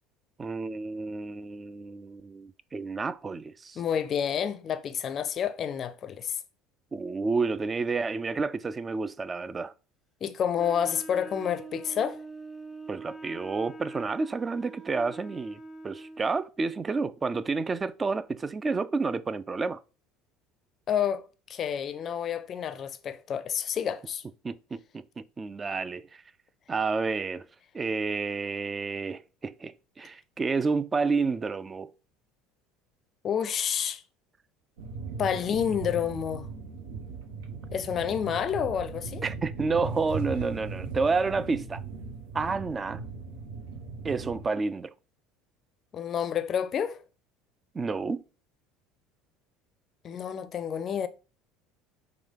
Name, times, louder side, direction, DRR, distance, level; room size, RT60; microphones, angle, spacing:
voice 1, 0.4-3.8 6.9-9.7 12.9-15.6 15.8-19.8 24.4-26.2 26.7-27.5 27.7-31.9 39.2-41.8 42.3-43.0 44.0-44.9 47.7-48.2, right 4 dB, 25° right, 0.3 m, -30 dB
voice 2, 3.8-6.4 10.2-12.2 20.9-21.2 21.5-24.2 33.2-34.0 35.2-36.5 37.7-39.2 45.9-47.0 50.0-51.1, left 8 dB, 45° left, 0.4 m, -29 dB
Wind instrument woodwind instrument, 10.6-16.4, right 3 dB, ahead, 0.8 m, -44 dB
sound 1, 34.8-44.5, right 4 dB, 85° right, 0.8 m, -38 dB
5.0 x 2.3 x 3.6 m
supercardioid pair, 85°, 0 cm